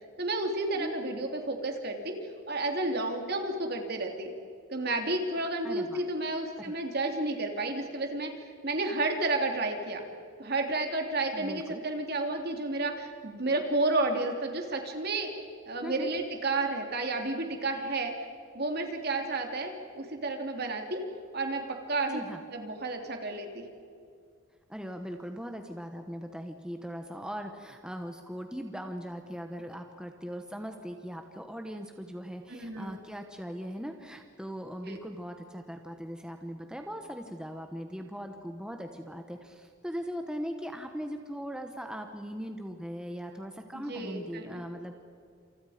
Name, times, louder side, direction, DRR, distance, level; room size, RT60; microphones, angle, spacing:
voice 1, 0.2-2.2 2.5-4.3 4.7-8.3 8.6-10.0 10.4-15.3 15.7-18.1 18.5-21.0 21.3-22.2 22.5-23.6 32.5-33.0 34.9-35.0 43.7-44.6, right 2 dB, 50° right, 4 dB, 3.1 m, -31 dB
voice 2, 5.6-6.0 6.6-6.7 11.3-11.8 15.8-16.1 22.1-22.4 24.7-44.9, equal, 5° right, 4 dB, 1.2 m, -39 dB
28.5 x 28.0 x 5.1 m, 2.3 s
head